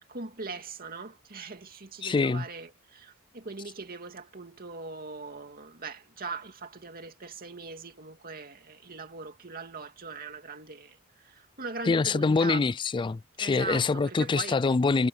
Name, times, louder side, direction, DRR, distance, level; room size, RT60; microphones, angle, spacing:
voice 1, 0.1-12.7 13.4-14.6, right 4 dB, 45° right, 2.5 m, -40 dB
voice 2, 2.0-2.5 11.9-15.1, left 4 dB, 20° left, 0.3 m, -25 dB
head